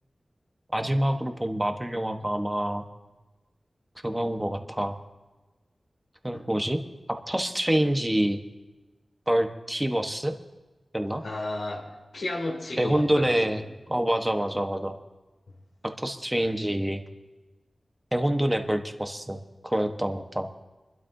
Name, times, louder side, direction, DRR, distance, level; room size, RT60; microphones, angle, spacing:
voice 1, 0.7-2.9 4.0-5.0 6.2-6.8 7.1-8.4 9.3-10.3 10.9-11.2 12.8-13.6 13.9-15.0 15.8-17.0 18.1-19.4 19.6-20.5, right 1 dB, 15° right, 6 dB, 1.1 m, -26 dB
voice 2, 11.2-13.5, left 2 dB, 90° left, -3 dB, 2.8 m, -33 dB
27.0 x 12.5 x 2.7 m, 1.2 s
wide cardioid pair, 90°, 0 cm